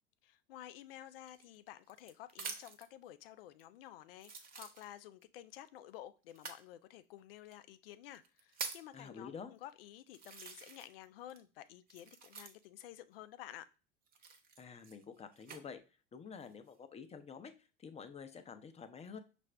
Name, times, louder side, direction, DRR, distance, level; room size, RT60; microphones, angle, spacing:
voice 1, 0.2-13.7, left 12 dB, 75° left, 0.5 m, -52 dB
sound 1, 1.2-2.9 3.6-3.7 4.2-5.2 6.3-6.6 7.5-7.6 8.1-8.9 9.6-9.7 10.1-11.0 11.3-12.8 14.1-15.6 16.3-16.7, right 4 dB, 30° right, 0.9 m, -47 dB
voice 2, 8.9-9.5 14.6-15.8 16.1-17.5 17.8-19.2, left 6 dB, 20° left, 0.6 m, -49 dB
5.7 x 2.5 x 3.2 m
hypercardioid pair, 80°, 29 cm